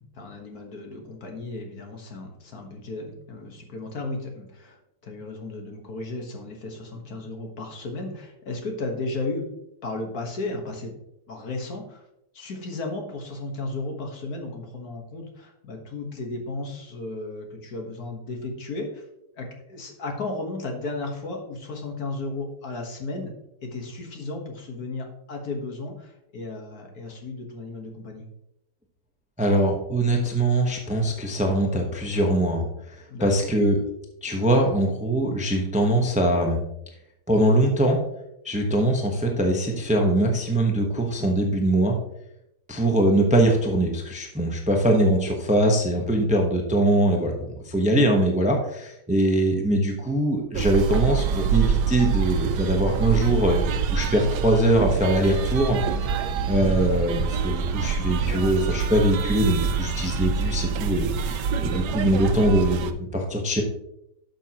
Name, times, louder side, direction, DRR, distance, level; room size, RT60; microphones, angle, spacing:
voice 1, 0.0-9.5 9.8-10.9 11.3-12.0 12.3-19.0 19.3-23.3 23.6-28.3 33.1-33.3, left 2 dB, 60° left, 2 dB, 1.8 m, -34 dB
voice 2, 29.4-33.8 34.2-36.7 37.3-38.0 38.4-41.9 42.7-55.8 56.5-63.6, right 1 dB, 5° right, 2 dB, 0.8 m, -22 dB
sound 1, 50.5-62.9, right 6 dB, 80° right, 1.3 m, -26 dB
11.5 x 6.2 x 2.9 m, 0.81 s
omnidirectional pair, 1.8 m